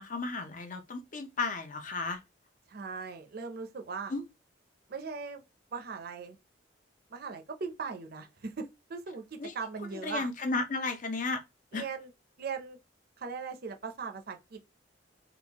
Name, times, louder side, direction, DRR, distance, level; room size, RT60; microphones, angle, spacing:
voice 1, 0.0-2.2 4.1-4.2 9.4-9.5 9.9-11.4 11.7-11.8, left 3 dB, 40° left, 0.6 m, -34 dB
voice 2, 2.7-4.1 4.9-5.4 5.7-6.4 7.1-10.3 11.7-12.1 12.4-12.8 13.2-14.6, right 5 dB, 50° right, 0.5 m, -39 dB
3.5 x 2.4 x 2.9 m
head